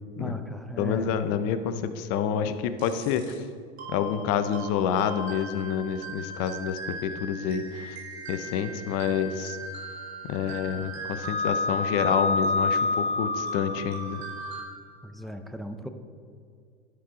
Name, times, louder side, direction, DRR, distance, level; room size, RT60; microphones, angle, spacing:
voice 1, 0.2-1.2 15.0-15.9, equal, ahead, 7 dB, 0.5 m, -37 dB
voice 2, 0.8-3.3 3.9-8.0 8.3-9.6 10.2-14.2, left 8 dB, 50° left, 10 dB, 0.6 m, -28 dB
sound 1, 2.8-3.3 3.8-14.6, left 2 dB, 85° right, 2.0 m, -32 dB
11.0 x 4.9 x 3.7 m, 2.2 s
hypercardioid pair, 90°, 31 cm